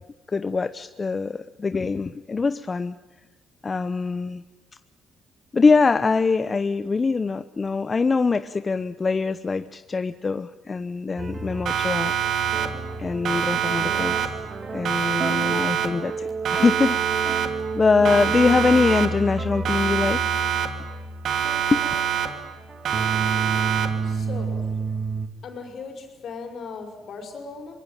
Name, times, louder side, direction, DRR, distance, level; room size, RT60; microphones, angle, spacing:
voice 1, 0.3-3.0 3.6-4.4 5.5-12.2 13.0-14.3 14.7-20.2 21.7-21.8, left 4 dB, 30° left, 11 dB, 0.8 m, -23 dB
sound 1, 11.2-25.3, right 4 dB, 40° right, 2.4 m, -31 dB
Siren, 11.7-13.0 13.3-14.6 14.9-16.2 16.5-17.8 18.1-19.4 19.7-21.0 21.3-22.6 22.9-24.2, right 9 dB, 70° right, 2.7 m, -26 dB
voice 2, 24.0-24.8 25.4-27.7, left 4 dB, 65° left, 4 dB, 5.5 m, -38 dB
24.5 x 21.5 x 9.0 m, 1.2 s
cardioid pair, 90°, 0 cm